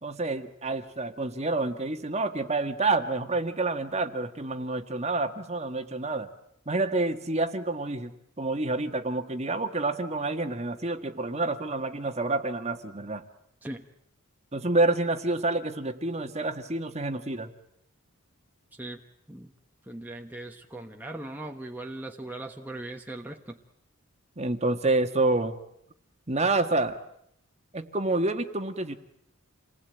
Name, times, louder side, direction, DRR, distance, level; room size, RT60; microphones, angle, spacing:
voice 1, 0.0-6.3 6.6-13.2 14.5-17.5 24.4-25.6 26.3-27.0 27.7-29.0, right 2 dB, 30° right, 7 dB, 1.6 m, -28 dB
voice 2, 19.8-23.6, right 1 dB, 10° right, 2 dB, 1.3 m, -39 dB
28.5 x 20.0 x 9.1 m, 0.74 s
head